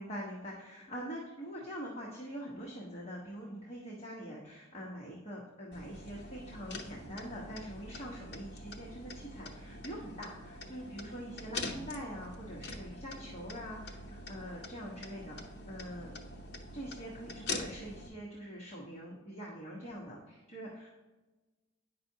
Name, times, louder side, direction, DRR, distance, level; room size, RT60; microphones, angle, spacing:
voice 1, 0.0-16.1 16.7-21.0, equal, 30° left, -4 dB, 1.1 m, -44 dB
sound 1, 5.7-18.1, left 2 dB, 55° left, 0.8 m, -44 dB
9.1 x 5.9 x 2.8 m, 1.2 s
head